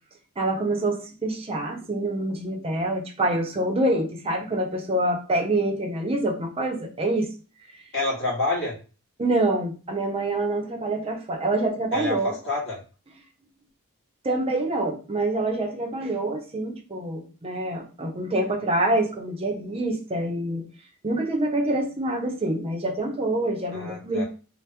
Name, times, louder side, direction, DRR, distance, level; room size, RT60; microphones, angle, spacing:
voice 1, 0.4-7.3 9.2-12.3 14.2-20.7 21.0-24.2, right 2 dB, 25° right, 2 dB, 0.6 m, -26 dB
voice 2, 7.9-8.7 11.9-12.8 23.7-24.2, left 2 dB, 55° left, -6 dB, 1.6 m, -28 dB
3.3 x 2.2 x 2.8 m, 0.35 s
head